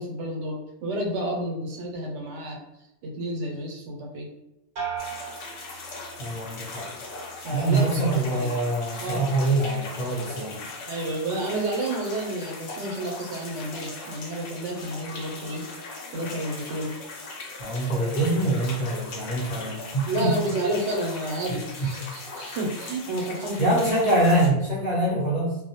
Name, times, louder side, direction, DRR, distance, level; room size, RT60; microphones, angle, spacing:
voice 1, 0.0-2.6 3.0-4.3 7.4-8.5 9.0-9.6 10.9-15.7 16.1-17.0 20.1-23.7, right 1 dB, 80° right, 0 dB, 0.9 m, -30 dB
sound 1, 4.8-6.5 6.9-7.5, right 6 dB, 55° right, 0.7 m, -37 dB
sound 2, 5.0-24.5, left 3 dB, 80° left, 0.9 m, -39 dB
voice 2, 6.2-6.9 7.5-10.6 17.6-20.3 21.8-21.9 23.6-25.6, right 1 dB, 40° left, -7 dB, 0.7 m, -24 dB
2.2 x 2.0 x 2.8 m, 0.89 s
omnidirectional pair, 1.2 m